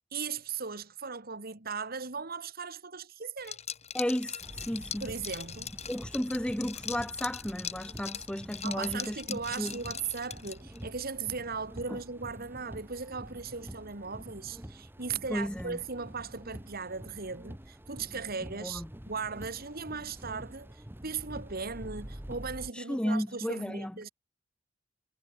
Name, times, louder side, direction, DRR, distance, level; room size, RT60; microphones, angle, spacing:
voice 1, 0.1-3.6 5.0-5.7 8.6-24.1, right 5 dB, 50° right, 2.2 m, -38 dB
Liquid, 3.4-10.8, left 8 dB, 35° left, 4.3 m, -41 dB
voice 2, 3.9-5.1 5.9-9.7 11.9-12.0 15.3-15.8 18.6-18.9 22.7-23.9, equal, 5° left, 0.7 m, -33 dB
sound 1, 4.4-22.7, equal, 10° right, 1.1 m, -47 dB
head